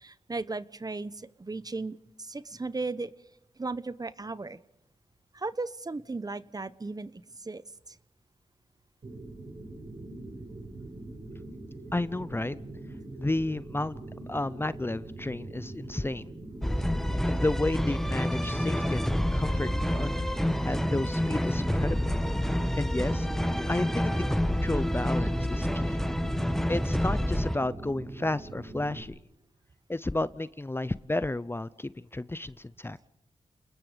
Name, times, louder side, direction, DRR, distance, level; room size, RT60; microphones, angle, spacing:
voice 1, 0.0-3.1 3.6-4.6 5.3-7.6 7.9-8.0, right 3 dB, 30° right, 15 dB, 1.1 m, -36 dB
sound 1, 9.0-29.0, right 2 dB, 55° right, 6.9 m, -43 dB
voice 2, 11.9-12.6 13.2-14.0 14.3-16.3 17.2-19.1 19.3-20.1 20.6-22.1 22.7-23.3 23.7-26.0 26.7-29.2 29.9-33.0, left 2 dB, 20° left, 17 dB, 0.7 m, -32 dB
sound 2, 16.6-27.6, equal, 5° left, 1.5 m, -28 dB
Scratching (performance technique), 18.1-18.2 18.4-18.6 18.9-19.3 20.0-20.5 20.9-21.4 21.6-21.8 22.1-22.5 23.2-23.8 24.1-24.5, left 5 dB, 85° left, 3.4 m, -48 dB
29.5 x 20.5 x 5.2 m, 0.87 s
cardioid pair, 60°, 12 cm